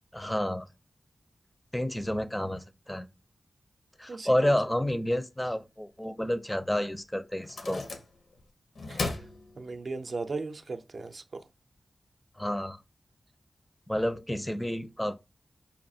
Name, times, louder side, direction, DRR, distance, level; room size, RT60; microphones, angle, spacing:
voice 1, 0.1-0.7 1.7-3.1 4.0-7.8 12.4-12.8 13.9-15.1, left 1 dB, 10° left, 0.4 m, -30 dB
voice 2, 4.1-4.5 8.9-9.3 9.6-11.5, right 3 dB, 55° right, 0.5 m, -37 dB
sound 1, 7.4-8.4 8.8-10.1, left 3 dB, 80° left, 0.7 m, -37 dB
5.3 x 2.4 x 2.6 m
wide cardioid pair, 105°, 0 cm